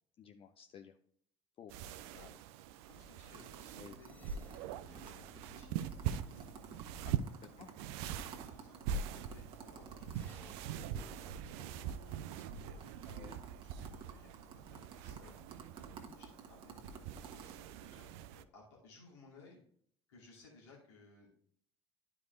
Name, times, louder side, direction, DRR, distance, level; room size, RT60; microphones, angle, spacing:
voice 1, 0.2-1.0 1.6-1.7 3.8-4.0 7.1-7.2 7.6-7.7 13.1-13.4 16.0-16.2 19.4-19.5, left 8 dB, 40° left, 7 dB, 0.5 m, -54 dB
sound 1, 1.7-18.4, right 8 dB, 60° right, 0.4 m, -43 dB
voice 2, 2.8-4.3 4.9-6.8 7.4-7.8 8.4-10.8 11.4-12.9 13.6-15.4 16.1-16.8 17.1-18.1 18.3-19.6 20.1-21.3, left 3 dB, 75° left, -4 dB, 2.4 m, -61 dB
sound 2, 3.3-11.3 11.6-11.7 11.9-17.5, right 6 dB, 35° right, 1.3 m, -52 dB
sound 3, 4.0-7.2 10.0-13.2, left 3 dB, 10° left, 0.9 m, -62 dB
12.0 x 4.8 x 2.6 m, 0.62 s
figure-of-eight pair, 55°, 15 cm